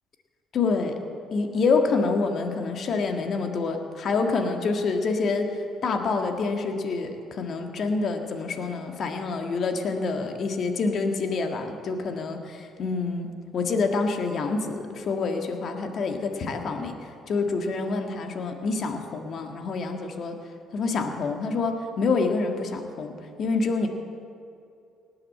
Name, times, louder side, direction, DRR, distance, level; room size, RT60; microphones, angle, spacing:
voice 1, 0.5-1.0 1.3-5.5 5.8-13.3 13.5-17.0 17.3-20.4 20.7-23.9, left 4 dB, 55° left, 5 dB, 1.7 m, -27 dB
18.5 x 8.8 x 7.5 m, 2.6 s
hypercardioid pair, 55°, 0 cm